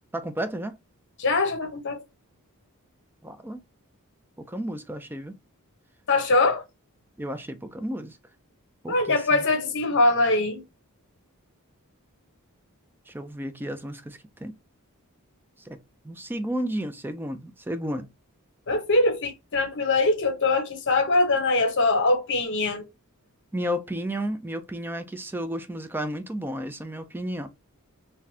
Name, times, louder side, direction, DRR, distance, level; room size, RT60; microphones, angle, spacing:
voice 1, 0.1-0.8 3.2-3.6 4.4-5.3 7.2-8.2 8.8-9.4 13.1-14.6 15.6-18.1 23.5-27.5, equal, 10° right, 0.4 m, -32 dB
voice 2, 1.2-2.0 6.1-6.6 8.9-10.6 18.7-22.8, left 2 dB, 55° left, 1.0 m, -22 dB
3.9 x 2.6 x 2.7 m
head